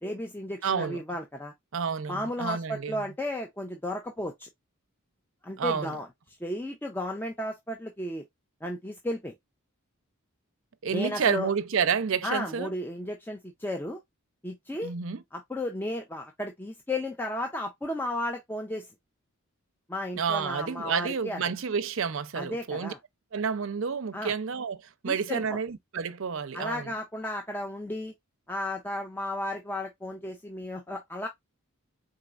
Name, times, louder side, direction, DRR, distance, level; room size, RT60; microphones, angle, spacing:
voice 1, 0.0-1.5 2.1-4.5 5.4-6.1 6.4-8.2 8.6-9.3 10.9-11.5 12.2-14.0 14.4-14.9 15.3-18.9 19.9-21.4 22.3-23.0 24.1-24.3 25.0-25.6 26.5-28.1 28.5-31.3, left 1 dB, 10° left, 0.5 m, -34 dB
voice 2, 0.6-1.0 1.7-3.0 5.6-5.9 10.8-12.7 14.8-15.2 20.2-22.9 23.3-26.9, right 6 dB, 60° right, 0.5 m, -30 dB
4.4 x 3.8 x 2.4 m
head